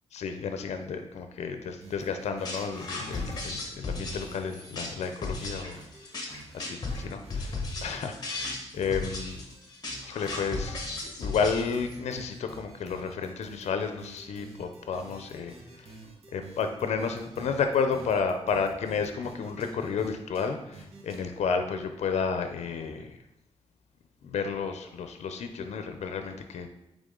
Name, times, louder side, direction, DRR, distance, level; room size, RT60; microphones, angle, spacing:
voice 1, 0.1-5.8 6.5-8.4 8.7-9.4 10.1-10.8 11.0-15.9 16.3-23.2 24.2-26.7, left 5 dB, 85° left, 7 dB, 0.6 m, -31 dB
sound 1, 1.7-4.0 4.2-5.1 5.4-6.6 6.9-8.1 8.4-9.6 9.9-20.1 20.3-20.5 20.7-21.2, right 2 dB, 70° right, 1.5 m, -49 dB
sound 2, 2.4-12.0, left 3 dB, 35° left, 1.4 m, -35 dB
8.9 x 3.7 x 3.8 m, 0.86 s
cardioid pair, 100°, 11 cm